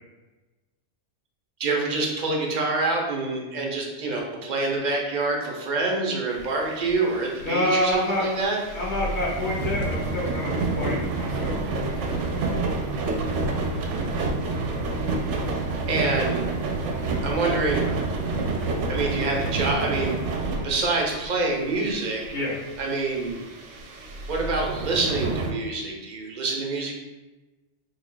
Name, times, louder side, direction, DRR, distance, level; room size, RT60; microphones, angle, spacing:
voice 1, 1.6-8.6 15.9-16.4 17.2-17.9 18.9-20.2 20.6-22.3 22.8-23.4 24.3-27.0, right 3 dB, 45° right, -1 dB, 0.6 m, -26 dB
sound 1, 6.3-25.5, right 3 dB, 75° right, 0.9 m, -29 dB
voice 2, 7.4-8.2 8.7-11.6 11.8-12.3 22.3-22.5, left 1 dB, 65° left, -5 dB, 1.1 m, -27 dB
3.2 x 2.3 x 3.7 m, 1.1 s
omnidirectional pair, 1.3 m